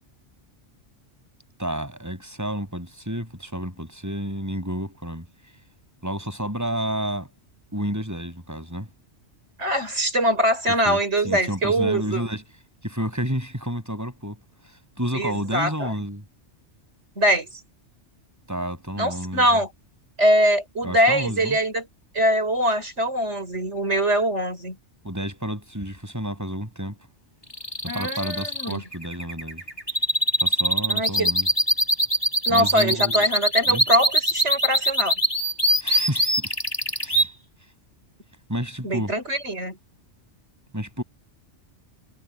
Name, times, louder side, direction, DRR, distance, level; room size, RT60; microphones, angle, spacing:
voice 1, 1.6-5.3 6.0-7.3 7.7-8.9 10.9-11.0 11.2-12.4 12.8-16.2 18.5-19.4 20.8-21.6 25.0-27.0 27.8-29.7 30.4-31.5 32.5-33.3 33.7-33.8 35.8-36.5 37.0-37.3 38.5-39.1 40.7-41.0, equal, 15° right, 8.0 m, -30 dB
voice 2, 9.6-12.3 15.1-15.9 17.2-17.5 19.0-19.7 20.2-21.9 22.1-24.8 27.9-28.8 30.9-31.3 32.5-35.1 38.8-39.8, equal, 75° right, 6.3 m, -23 dB
sound 1, 27.5-37.3, equal, 20° left, 4.4 m, -22 dB
omnidirectional pair, 1.2 m